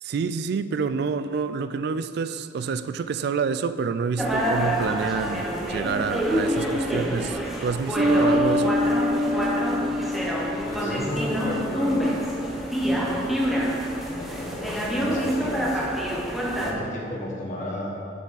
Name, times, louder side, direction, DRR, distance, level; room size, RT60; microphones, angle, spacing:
voice 1, 0.0-8.8, right 5 dB, 60° right, 13 dB, 0.3 m, -28 dB
sound 1, 4.2-16.7, equal, ahead, 0.8 m, -27 dB
Bass guitar, 8.0-11.5, left 1 dB, 30° right, 0.9 m, -25 dB
voice 2, 10.6-12.2 12.8-13.2 14.1-15.8 16.6-17.9, equal, 45° left, -4 dB, 1.4 m, -33 dB
7.5 x 7.0 x 4.0 m, 2.6 s
head